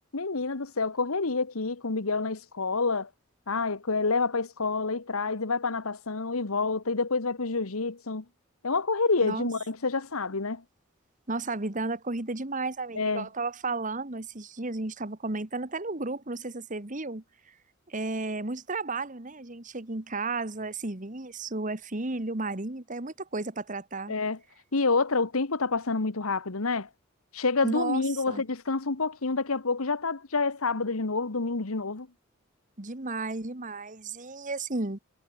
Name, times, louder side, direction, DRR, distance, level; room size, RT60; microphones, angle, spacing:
voice 1, 0.1-3.1 3.5-8.2 8.6-10.6 13.0-13.3 24.1-24.4 24.7-26.9 27.3-32.1, left 3 dB, 85° left, 1.4 m, -28 dB
voice 2, 11.3-17.2 17.9-24.1 27.6-28.4 32.8-35.0, right 3 dB, 35° right, 1.7 m, -33 dB
head